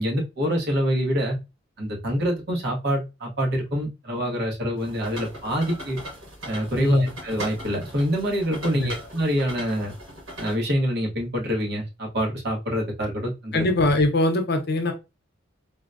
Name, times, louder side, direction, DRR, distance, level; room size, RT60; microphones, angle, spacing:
voice 1, 0.0-1.4 1.8-6.0 6.5-9.9 10.4-13.6, equal, 55° right, 1.1 m, -26 dB
sound 1, 4.8-10.5, right 1 dB, 85° right, 1.4 m, -39 dB
voice 2, 6.8-7.1 8.7-8.9 13.5-14.9, left 2 dB, 55° left, 0.7 m, -21 dB
3.9 x 2.2 x 2.5 m
head